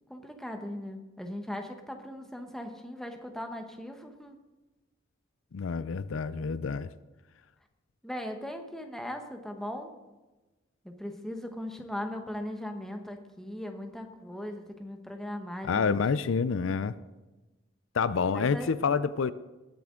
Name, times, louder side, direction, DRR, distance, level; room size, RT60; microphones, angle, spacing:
voice 1, 0.1-4.4 8.0-9.9 10.8-16.0 18.3-18.7, left 1 dB, ahead, 4 dB, 1.0 m, -39 dB
voice 2, 5.5-6.9 15.6-16.9 17.9-19.3, left 5 dB, 85° left, 16 dB, 0.5 m, -28 dB
19.0 x 7.7 x 3.8 m, 1.1 s
head